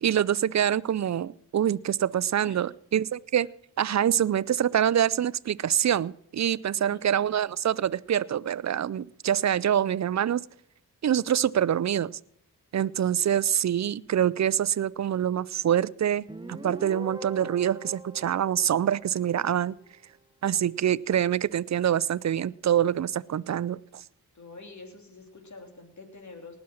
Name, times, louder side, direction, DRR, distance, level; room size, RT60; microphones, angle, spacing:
voice 1, 0.0-3.5 3.8-10.4 11.0-12.2 12.7-19.7 20.4-24.0, right 10 dB, 45° right, 22 dB, 0.5 m, -25 dB
Guitar, 16.3-19.7, right 1 dB, 10° right, 1.3 m, -42 dB
voice 2, 24.3-26.6, left 3 dB, 45° left, 3 dB, 3.5 m, -47 dB
19.0 x 7.3 x 6.3 m, 0.71 s
cardioid pair, 45°, 39 cm